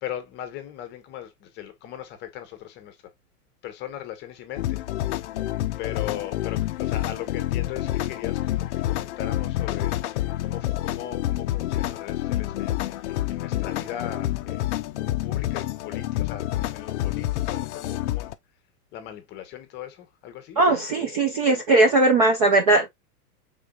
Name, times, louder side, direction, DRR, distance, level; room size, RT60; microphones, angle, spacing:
voice 1, 0.0-3.0 3.6-4.8 5.8-10.0 10.4-14.7 15.0-18.3 18.9-20.6, left 11 dB, 25° left, 0.8 m, -38 dB
sound 1, 4.6-18.3, left 14 dB, 50° left, 0.5 m, -28 dB
voice 2, 20.6-22.9, right 2 dB, 25° right, 0.4 m, -19 dB
5.0 x 3.8 x 2.2 m
supercardioid pair, 150°, 46 cm